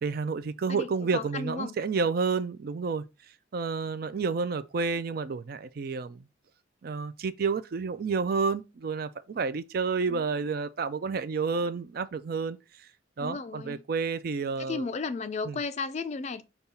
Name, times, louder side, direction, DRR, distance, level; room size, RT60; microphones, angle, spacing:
voice 1, 0.0-3.0 3.5-6.2 6.8-12.6 13.2-14.8 15.5-15.6, right 4 dB, 55° right, 0.4 m, -30 dB
voice 2, 0.7-1.8 10.1-10.2 13.2-13.9 14.6-16.4, left 4 dB, 35° left, 0.4 m, -34 dB
5.2 x 2.3 x 4.2 m
head